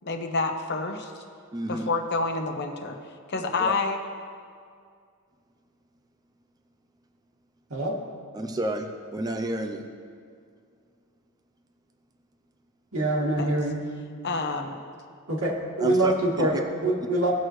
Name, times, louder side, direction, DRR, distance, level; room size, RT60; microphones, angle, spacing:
voice 1, 0.0-1.2 1.7-3.0 3.3-4.0 13.4-13.6 14.2-14.8, left 3 dB, 50° left, 4 dB, 0.9 m, -28 dB
voice 2, 1.5-1.9 3.6-3.7 8.3-9.9 15.8-16.6, right 1 dB, 20° right, 4 dB, 0.5 m, -31 dB
voice 3, 12.9-13.8 15.3-17.3, right 1 dB, 90° right, -3 dB, 2.1 m, -25 dB
17.5 x 6.4 x 3.2 m, 2.2 s
head